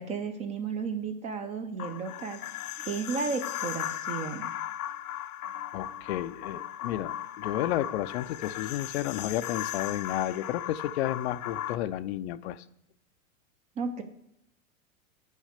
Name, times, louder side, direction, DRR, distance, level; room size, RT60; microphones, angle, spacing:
voice 1, 0.0-2.4 2.9-4.5 13.8-14.0, right 5 dB, 15° right, 8 dB, 0.5 m, -33 dB
sound 1, 1.8-11.8, left 12 dB, 90° left, 0.7 m, -37 dB
voice 2, 5.7-12.6, left 13 dB, 50° left, 13 dB, 0.5 m, -32 dB
9.2 x 6.5 x 6.6 m, 0.77 s
supercardioid pair, 140°, 42 cm